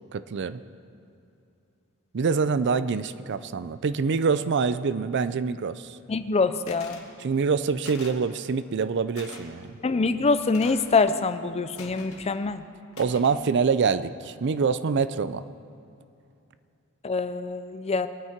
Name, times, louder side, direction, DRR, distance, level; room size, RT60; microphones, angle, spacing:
voice 1, 0.1-0.6 2.1-6.0 7.2-9.7 13.0-15.4, right 5 dB, 55° right, 14 dB, 0.4 m, -25 dB
voice 2, 6.1-7.0 9.8-12.6 17.0-18.1, left 4 dB, 30° left, 12 dB, 0.5 m, -25 dB
sound 1, 6.7-7.1 7.8-8.2 9.2-9.4 10.5-10.9 11.8-12.3 12.9-13.4, left 4 dB, 70° left, 1.9 m, -44 dB
23.0 x 9.4 x 4.5 m, 2.7 s
head